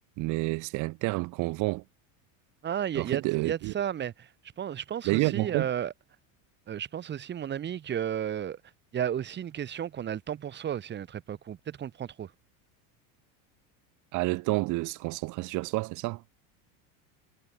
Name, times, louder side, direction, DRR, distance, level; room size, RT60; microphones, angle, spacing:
voice 1, 0.2-1.8 2.9-3.7 5.0-5.7 14.1-16.2, right 22 dB, 40° right, 1.0 m, -29 dB
voice 2, 2.6-4.3 4.6-5.9 6.7-8.6 8.9-12.3, right 9 dB, 25° right, 2.0 m, -33 dB
cardioid pair, 165°, 44 cm